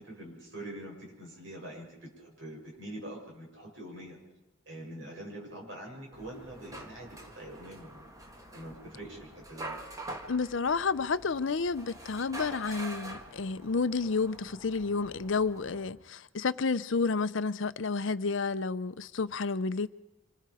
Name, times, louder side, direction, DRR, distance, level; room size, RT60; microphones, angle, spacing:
voice 1, 0.0-4.2 4.7-8.0 8.5-9.8, right 1 dB, 65° right, 7.1 m, -44 dB
sound 1, 6.1-15.9, right 1 dB, 15° right, 1.6 m, -46 dB
voice 2, 10.3-19.9, left 4 dB, 65° left, 0.6 m, -30 dB
26.0 x 21.0 x 4.9 m
head